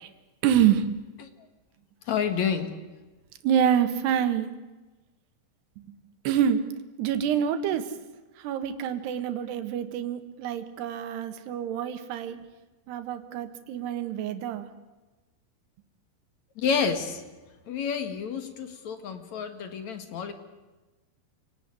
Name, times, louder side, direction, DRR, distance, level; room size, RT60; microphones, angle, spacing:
voice 1, 0.4-0.9 3.4-4.5 6.3-6.6 7.0-7.9 8.4-12.4 12.9-14.7, right 9 dB, 80° right, 8 dB, 3.6 m, -26 dB
voice 2, 2.1-2.7 16.6-17.2 17.7-20.3, left 6 dB, 50° left, 8 dB, 2.7 m, -29 dB
28.5 x 17.5 x 9.7 m, 1.2 s
omnidirectional pair, 4.7 m